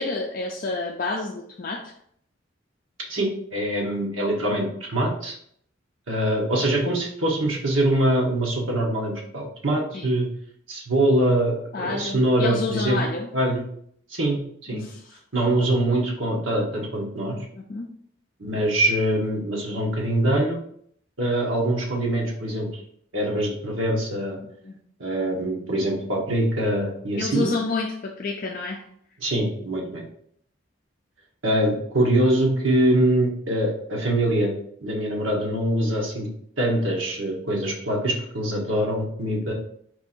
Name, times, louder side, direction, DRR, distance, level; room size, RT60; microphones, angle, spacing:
voice 1, 0.0-1.9 9.9-10.1 11.7-13.3 14.7-15.2 17.5-17.9 24.4-24.8 27.1-28.8, left 3 dB, 45° left, 1 dB, 0.4 m, -29 dB
voice 2, 3.1-5.4 6.1-10.3 10.7-13.0 13.3-13.6 14.1-14.4 14.7-14.8 15.3-17.4 18.4-20.6 21.2-22.8 23.1-24.4 25.0-27.5 29.2-30.0 31.4-34.5 34.8-36.3 36.6-39.5, right 1 dB, 85° right, -1 dB, 1.2 m, -23 dB
4.4 x 2.5 x 4.3 m, 0.65 s
head